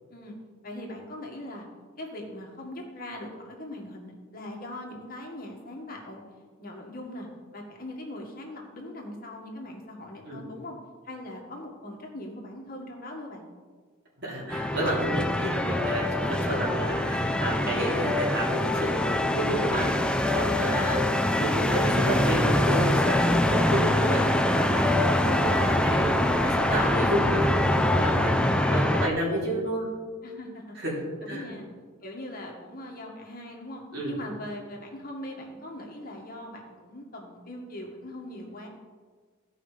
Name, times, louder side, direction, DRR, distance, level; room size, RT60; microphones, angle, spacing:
voice 1, 0.6-1.7 2.0-6.2 6.6-10.8 11.0-13.5 30.2-30.8 31.2-31.7 32.0-38.7, left 1 dB, 45° left, 0 dB, 1.6 m, -41 dB
voice 2, 14.2-19.9 20.3-21.0 21.4-28.3 28.7-29.9 30.8-31.0 31.3-31.5 33.9-34.2, equal, 55° right, -5 dB, 3.6 m, -31 dB
sound 1, 14.5-29.1, left 1 dB, 5° left, 0.5 m, -24 dB
15.5 x 5.5 x 5.0 m, 1.5 s
head